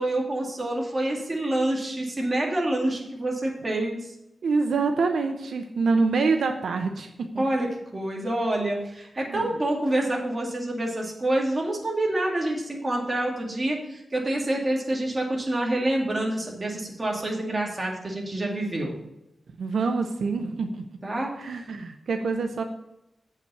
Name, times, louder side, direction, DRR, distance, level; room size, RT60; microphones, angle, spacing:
voice 1, 0.0-4.1 7.4-19.0 21.0-21.6, right 1 dB, 30° right, -1 dB, 2.4 m, -27 dB
voice 2, 4.4-7.4 9.2-9.5 19.6-20.9 21.4-22.6, right 4 dB, 85° right, 5 dB, 0.7 m, -26 dB
8.0 x 5.7 x 7.0 m, 0.86 s
wide cardioid pair, 100°, 0 cm